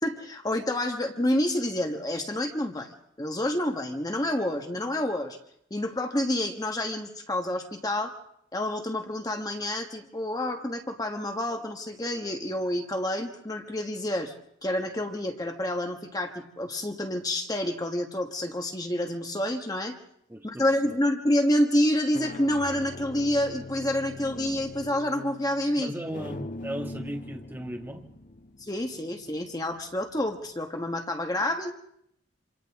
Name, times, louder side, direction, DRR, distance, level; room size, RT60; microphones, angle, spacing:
voice 1, 0.0-5.4 5.7-8.2 8.5-14.3 14.6-19.9 20.4-25.9 28.6-31.7, left 1 dB, 20° left, 4 dB, 1.4 m, -28 dB
voice 2, 20.3-21.0 25.7-28.1, equal, 10° right, 2 dB, 1.6 m, -36 dB
sound 1, 20.7-21.1 21.9-30.5, left 2 dB, 40° left, 0.8 m, -43 dB
27.5 x 26.5 x 3.6 m, 0.72 s
head